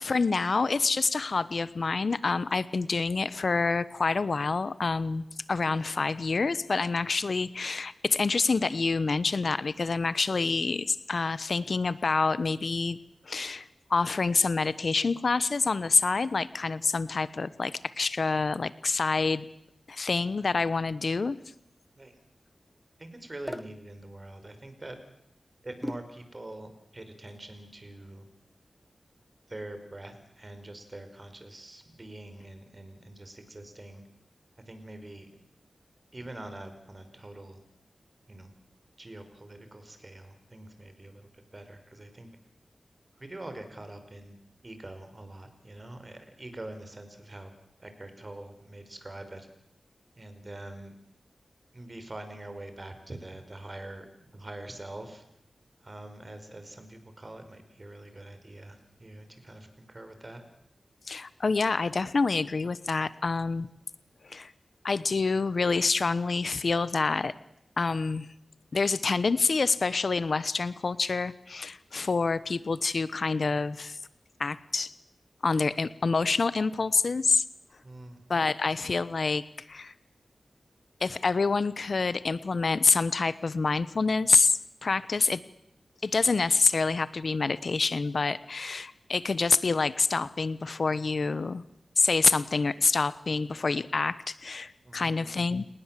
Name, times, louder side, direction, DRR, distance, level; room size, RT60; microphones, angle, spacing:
voice 1, 0.0-13.0 13.3-19.5 19.9-21.4 61.1-63.7 64.2-64.5 64.8-67.3 67.8-68.3 68.7-74.0 74.4-74.9 75.4-77.4 78.3-79.9 81.0-85.4 86.0-91.6 92.0-95.7, left 4 dB, 65° left, 16 dB, 1.0 m, -27 dB
voice 2, 23.0-25.0 25.6-28.3 29.5-34.0 34.7-35.3 36.1-37.6 38.3-38.5 39.0-42.3 43.2-44.4 44.6-47.5 47.8-49.5 50.2-51.0 51.7-54.1 54.3-55.2 55.8-60.5 77.8-78.2 94.8-95.3, right 1 dB, 35° right, 8 dB, 5.3 m, -44 dB
sound 1, 23.5-23.7 25.8-26.2, left 1 dB, 10° left, 1.3 m, -36 dB
29.5 x 19.0 x 7.6 m, 0.78 s
cardioid pair, 55°, 0 cm